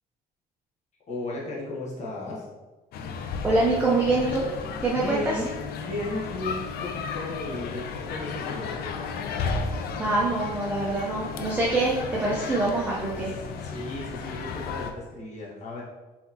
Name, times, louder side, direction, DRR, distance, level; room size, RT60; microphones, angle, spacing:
voice 1, 1.1-2.4 4.9-5.5 5.8-9.1 13.2-15.8, left 2 dB, 45° left, -5 dB, 1.2 m, -35 dB
sound 1, 2.9-14.9, left 5 dB, 70° left, 0.5 m, -34 dB
voice 2, 3.4-4.5 4.8-5.2 10.0-13.3, right 2 dB, 10° right, -5 dB, 0.7 m, -25 dB
4.1 x 4.1 x 2.9 m, 1.2 s
cardioid pair, 110°, 17 cm